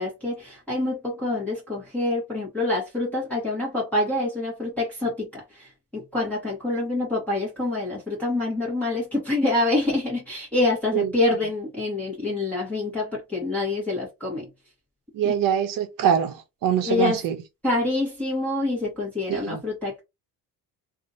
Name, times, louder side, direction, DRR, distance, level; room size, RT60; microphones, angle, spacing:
voice 1, 0.0-14.5 15.2-15.3 16.8-17.2 17.6-20.0, left 2 dB, 5° left, 1.2 m, -26 dB
voice 2, 15.1-17.4 19.3-19.6, right 9 dB, 55° right, 0.8 m, -24 dB
2.8 x 2.6 x 2.6 m
cardioid pair, 165°, 39 cm